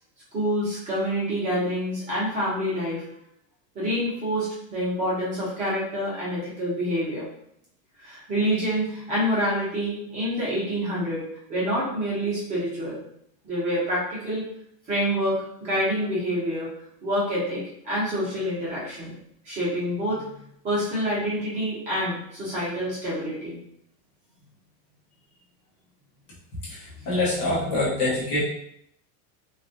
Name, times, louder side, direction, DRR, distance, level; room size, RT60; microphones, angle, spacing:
voice 1, 0.3-3.0 3.7-7.3 8.0-13.0 13.4-14.5 14.9-16.7 17.0-19.1 19.4-20.2 20.6-23.6 27.0-27.1 27.4-28.1, equal, 15° right, -7 dB, 0.6 m, -27 dB
voice 2, 26.7-28.4, left 2 dB, 20° left, -8 dB, 0.3 m, -25 dB
3.3 x 2.3 x 2.6 m, 0.72 s
supercardioid pair, 175°, 49 cm